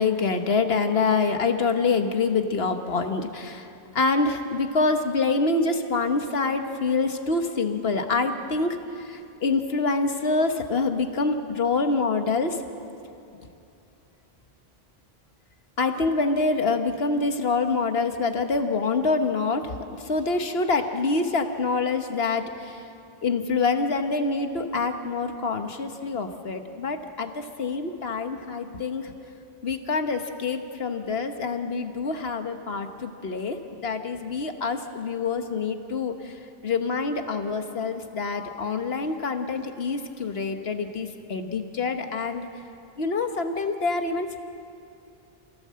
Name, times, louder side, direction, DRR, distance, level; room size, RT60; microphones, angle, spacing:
voice 1, 0.0-3.7 3.9-12.6 15.8-22.8 23.2-29.1 29.6-36.4 36.6-42.5 43.0-44.4, left 4 dB, 75° left, 6 dB, 1.5 m, -26 dB
27.5 x 16.5 x 7.6 m, 2.7 s
omnidirectional pair, 1.0 m